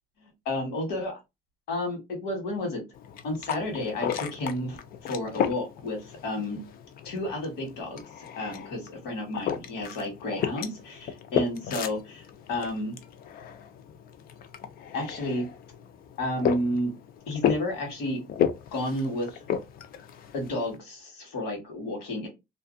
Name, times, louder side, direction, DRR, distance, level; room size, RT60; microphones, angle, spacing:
voice 1, 0.4-1.2 1.7-2.8 3.2-6.6 7.0-12.9 14.9-15.4 16.2-16.9 17.3-18.2 18.7-19.4 20.3-22.3, left 1 dB, 85° left, 2 dB, 1.3 m, -31 dB
sound 1, 2.9-20.8, left 9 dB, 60° left, 0.4 m, -34 dB
2.5 x 2.3 x 2.5 m, 0.22 s
cardioid pair, 110°, 17 cm